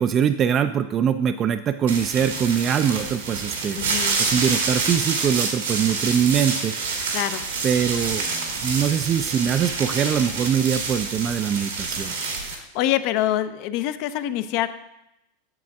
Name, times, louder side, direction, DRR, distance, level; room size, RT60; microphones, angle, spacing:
voice 1, 0.0-3.8 4.2-7.1 7.6-12.1, right 8 dB, 35° right, 10 dB, 0.3 m, -23 dB
sound 1, 1.9-12.5, right 4 dB, 80° right, 1.6 m, -27 dB
voice 2, 3.8-4.2 7.1-7.4 12.4-14.7, left 13 dB, 55° left, 12 dB, 0.5 m, -25 dB
7.7 x 7.0 x 3.5 m, 0.88 s
hypercardioid pair, 95°, 0 cm